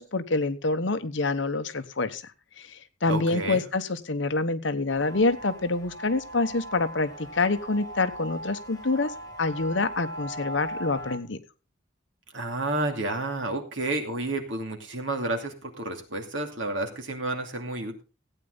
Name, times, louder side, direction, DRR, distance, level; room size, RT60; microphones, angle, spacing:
voice 1, 0.0-2.2 2.6-9.1 9.4-11.4, left 3 dB, 70° left, 10 dB, 1.1 m, -27 dB
voice 2, 3.1-3.6 12.3-18.0, right 2 dB, 75° right, 4 dB, 2.5 m, -30 dB
sound 1, 4.9-11.2, right 1 dB, 20° left, 2.3 m, -39 dB
16.0 x 9.1 x 3.9 m, 0.32 s
head